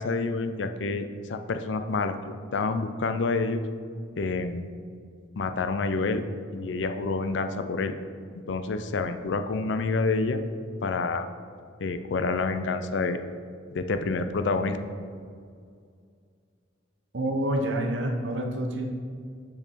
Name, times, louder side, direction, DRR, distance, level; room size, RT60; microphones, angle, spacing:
voice 1, 0.0-3.6 4.2-4.7 5.4-6.2 6.5-7.9 8.5-10.4 10.8-11.3 11.8-13.2 13.7-14.8, left 3 dB, 65° left, 9 dB, 0.4 m, -28 dB
voice 2, 17.1-18.8, right 1 dB, 70° right, 1 dB, 0.9 m, -27 dB
6.4 x 5.9 x 4.2 m, 2.2 s
head